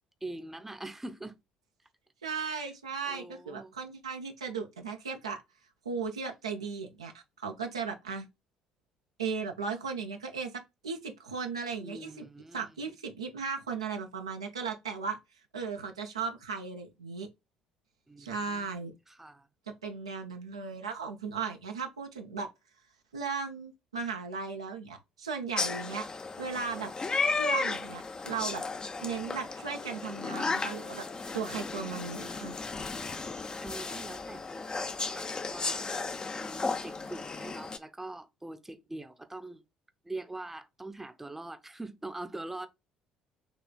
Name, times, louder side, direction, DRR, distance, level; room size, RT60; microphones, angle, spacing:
voice 1, 0.2-1.4 2.4-2.7 3.0-3.7 11.8-12.8 18.1-18.7 19.1-19.5 33.6-35.9 36.3-39.6 40.0-42.7, right 2 dB, 10° right, 0.7 m, -43 dB
voice 2, 2.2-5.4 5.8-8.3 9.2-10.5 10.8-12.3 12.5-15.2 15.5-17.3 18.2-18.9 19.8-22.5 23.1-26.1 26.4-26.9 27.3-28.6 29.0-31.0 31.3-32.6, right 5 dB, 85° right, 0.6 m, -36 dB
sound 1, 25.5-37.8, left 4 dB, 30° left, 0.6 m, -34 dB
6.1 x 3.2 x 2.3 m
figure-of-eight pair, 50°, 3 cm